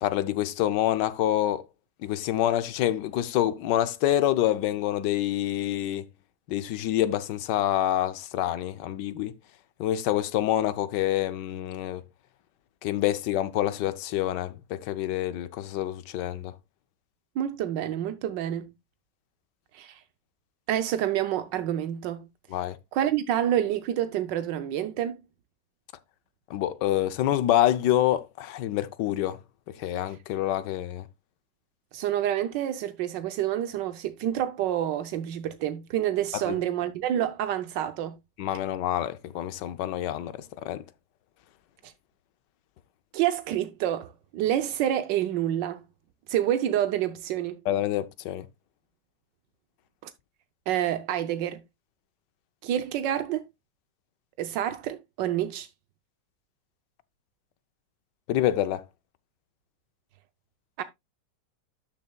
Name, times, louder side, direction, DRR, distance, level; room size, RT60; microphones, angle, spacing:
voice 1, 0.0-1.6 2.0-6.0 6.5-9.3 9.8-12.0 12.8-16.5 22.5-22.8 26.5-29.4 29.8-31.0 36.5-36.6 38.4-40.8 47.7-48.4 58.3-58.8, left 13 dB, 80° left, 1.3 m, -27 dB
voice 2, 17.4-18.7 19.7-20.0 20.7-22.3 22.9-25.2 31.9-38.2 41.8-41.9 43.1-45.8 46.3-47.6 50.7-51.6 52.6-53.4 54.4-55.7 60.8-60.9, right 11 dB, 85° right, 1.4 m, -28 dB
12.0 x 6.8 x 2.2 m
omnidirectional pair, 1.9 m